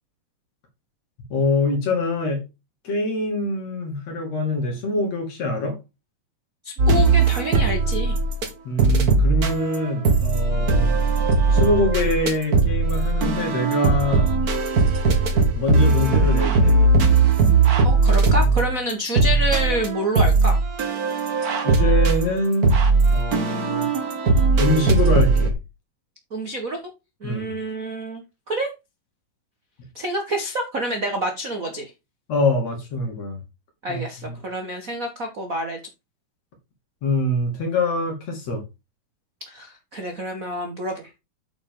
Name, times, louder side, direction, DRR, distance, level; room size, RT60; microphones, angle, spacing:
voice 1, 1.3-2.4 2.9-5.8 8.7-10.9 11.5-14.3 15.5-16.8 21.6-22.7 23.1-23.9 24.6-25.5 27.2-27.6 32.3-33.4 33.9-34.4 37.0-38.6, left 2 dB, 55° left, 3.5 m, -24 dB
voice 2, 6.6-8.2 17.8-20.6 26.3-26.8 27.2-28.7 29.9-31.9 33.8-35.8 39.5-41.2, right 1 dB, 60° right, 0.8 m, -27 dB
sound 1, 6.8-8.5 8.8-25.5, right 3 dB, 85° right, 0.8 m, -19 dB
8.5 x 6.8 x 3.8 m
omnidirectional pair, 3.9 m